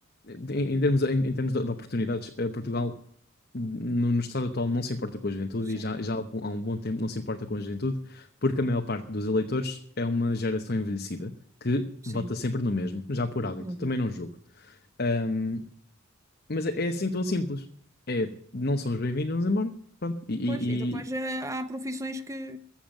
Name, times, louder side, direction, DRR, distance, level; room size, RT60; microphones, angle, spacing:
voice 1, 0.3-2.9 3.5-11.3 11.6-14.3 14.6-15.6 16.5-17.6 18.1-19.7 20.0-21.0, left 2 dB, 50° left, 1.0 m, -29 dB
voice 2, 13.6-14.0 20.5-22.6, equal, 15° right, 0.8 m, -35 dB
14.5 x 7.2 x 9.0 m
head